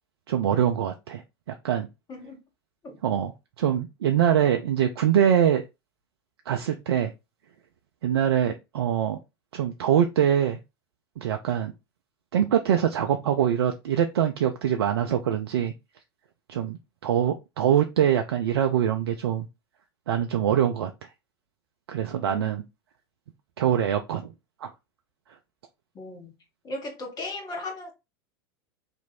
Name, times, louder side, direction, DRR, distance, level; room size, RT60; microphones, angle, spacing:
voice 1, 0.3-1.2 1.5-1.9 3.0-3.3 3.6-5.6 6.5-7.1 8.0-9.2 9.5-10.6 11.2-11.7 12.3-15.7 16.5-16.8 17.0-19.5 20.1-20.9 21.9-22.6 23.6-24.2 24.6-24.7, right 9 dB, 75° right, 0.5 m, -23 dB
voice 2, 22.3-22.6 26.0-26.3 26.6-27.9, left 2 dB, 30° left, 1.8 m, -36 dB
3.6 x 3.0 x 4.2 m
hypercardioid pair, 90°, 13 cm